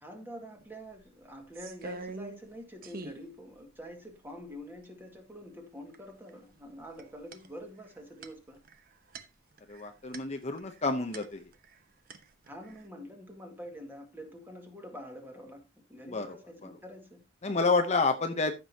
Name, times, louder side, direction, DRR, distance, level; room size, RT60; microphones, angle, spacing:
voice 1, 0.0-8.6 12.5-15.6 15.9-17.6, equal, 10° right, 1.9 m, -46 dB
sound 1, 0.6-0.7 1.0-2.5 2.8-3.3 3.8-3.9 4.2-4.8 5.9-6.3 6.6-11.8 12.1-12.9, right 3 dB, 45° right, 0.9 m, -46 dB
voice 2, 9.7-11.5 16.0-16.4 16.6-16.7 17.4-18.5, left 3 dB, 35° left, 0.8 m, -29 dB
14.5 x 6.1 x 2.8 m
head